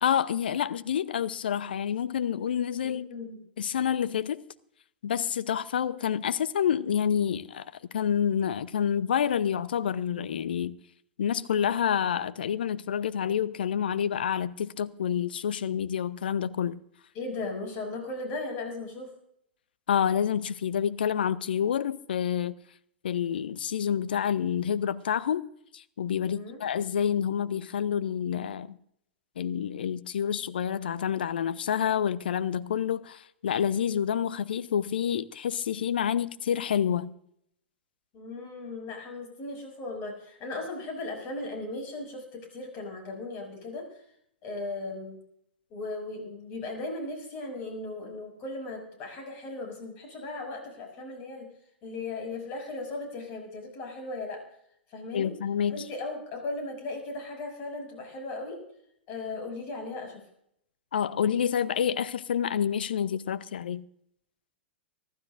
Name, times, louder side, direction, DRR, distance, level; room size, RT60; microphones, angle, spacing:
voice 1, 0.0-3.1 3.6-4.4 5.0-10.8 11.2-16.8 19.9-22.5 23.0-25.5 25.7-28.8 29.4-37.1 55.1-55.8 60.9-63.8, left 8 dB, 60° left, 0.7 m, -28 dB
voice 2, 2.8-3.4 17.1-19.1 26.2-26.6 38.1-44.0 44.4-45.2 45.7-51.5 51.8-54.4 54.9-55.3 55.7-58.6 59.1-60.2, left 2 dB, 35° left, 6.4 m, -37 dB
25.0 x 12.5 x 2.6 m
figure-of-eight pair, 100°, 6 cm